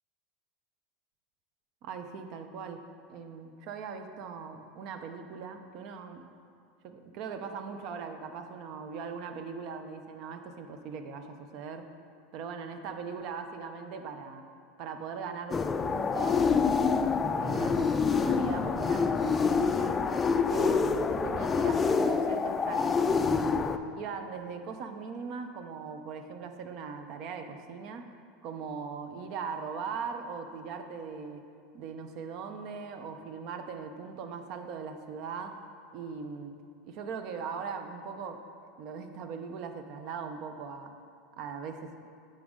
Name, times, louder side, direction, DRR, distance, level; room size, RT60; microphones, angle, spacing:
voice 1, 1.8-6.2 6.8-11.9 12.3-14.4 14.8-15.6 15.8-17.1 17.3-20.0 20.5-23.6 23.9-28.0 28.4-31.4 31.7-35.6 35.9-36.6 36.8-38.4 38.8-40.9 41.4-41.9, right 5 dB, 55° right, 7 dB, 0.6 m, -40 dB
sound 1, 15.5-23.8, left 5 dB, 25° left, 0.3 m, -27 dB
9.1 x 5.2 x 3.7 m, 2.4 s
supercardioid pair, 110°, 0 cm